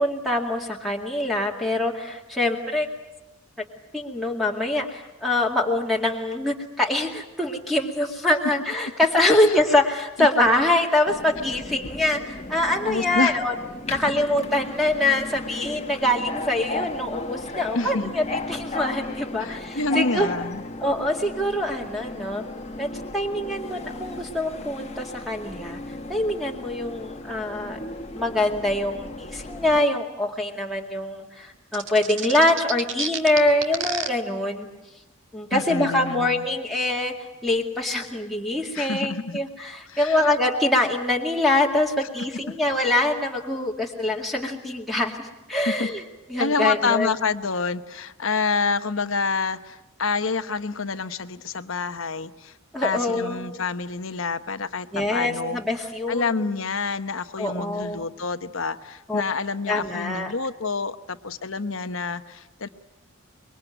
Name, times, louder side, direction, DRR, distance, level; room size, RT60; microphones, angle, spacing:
voice 1, 0.0-2.9 3.9-13.5 13.9-18.2 18.5-20.3 20.8-22.4 22.8-25.8 26.1-27.8 28.1-34.7 35.3-37.1 37.4-45.2 45.5-46.0 46.3-47.1 52.7-53.4 54.9-56.4 57.4-58.0 59.1-59.2 59.7-60.3, left 1 dB, ahead, -3 dB, 2.2 m, -24 dB
Subway metro underground, 11.1-29.8, left 2 dB, 30° left, 1.3 m, -35 dB
voice 2, 12.8-13.3 17.7-18.1 19.4-20.6 35.5-36.5 38.7-39.4 39.9-40.3 45.7-45.9 46.4-52.5 52.8-55.6 56.1-62.7, left 4 dB, 65° left, 11 dB, 1.1 m, -27 dB
sound 1, 31.7-34.1, right 7 dB, 55° right, 2.0 m, -29 dB
25.0 x 22.5 x 9.2 m, 0.99 s
head